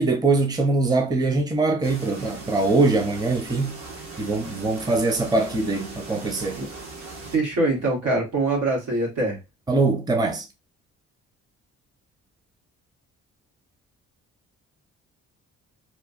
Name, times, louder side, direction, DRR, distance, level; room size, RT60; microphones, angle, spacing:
voice 1, 0.0-3.8 4.2-6.6 9.7-10.5, right 3 dB, 15° right, 0.6 m, -22 dB
sound 1, 1.8-7.4, right 3 dB, 60° right, 1.2 m, -39 dB
voice 2, 7.3-9.4, right 2 dB, 85° right, 1.7 m, -23 dB
3.0 x 2.2 x 2.4 m
cardioid pair, 90°, 30 cm